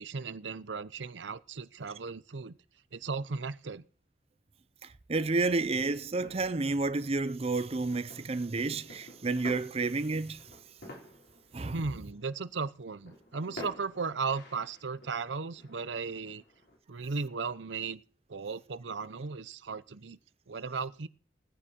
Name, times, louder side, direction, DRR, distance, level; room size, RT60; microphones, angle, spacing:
voice 1, 0.0-2.6 2.9-3.8 11.7-16.4 16.9-18.0 18.3-20.2 20.5-21.1, right 4 dB, 75° right, 0.7 m, -36 dB
voice 2, 4.8-10.5 11.5-11.8, right 3 dB, 35° right, 0.6 m, -30 dB
sound 1, 5.6-16.8, left 1 dB, 60° left, 4.3 m, -51 dB
18.0 x 10.0 x 4.4 m
head